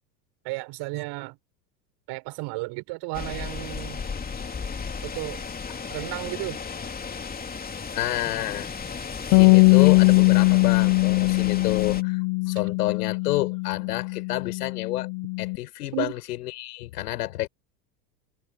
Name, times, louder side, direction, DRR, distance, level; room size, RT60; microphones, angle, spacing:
voice 1, 0.4-1.4 2.1-4.0 5.0-5.4 5.9-6.6 15.9-16.1, right 25 dB, 55° right, 6.1 m, -33 dB
sound 1, 3.1-12.0, left 5 dB, 20° left, 2.9 m, -35 dB
voice 2, 7.9-8.7 9.3-12.2 12.5-15.1 15.4-17.5, left 15 dB, 70° left, 6.2 m, -29 dB
Bass guitar, 9.3-15.6, left 30 dB, 50° left, 1.0 m, -20 dB
hypercardioid pair, 90°, 48 cm